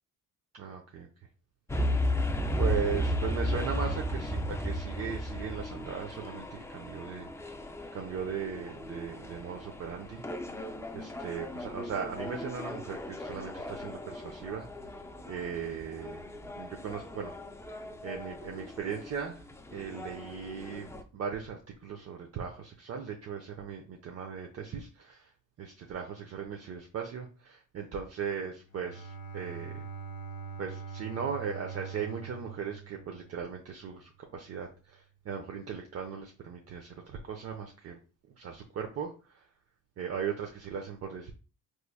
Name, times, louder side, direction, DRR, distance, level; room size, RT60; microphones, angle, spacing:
voice 1, 0.5-1.1 2.6-7.3 7.9-10.2 10.9-14.7 15.3-16.3 16.5-17.3 18.0-19.4 19.7-25.3 25.6-29.9 30.6-38.0 38.4-39.4 40.0-41.3, right 7 dB, 55° right, 2 dB, 0.6 m, -38 dB
sound 1, 1.7-21.0, equal, 10° left, 0.4 m, -35 dB
Bowed string instrument, 28.7-33.6, right 6 dB, 60° left, 0.8 m, -43 dB
3.4 x 3.1 x 2.3 m, 0.33 s
cardioid pair, 90°, 30 cm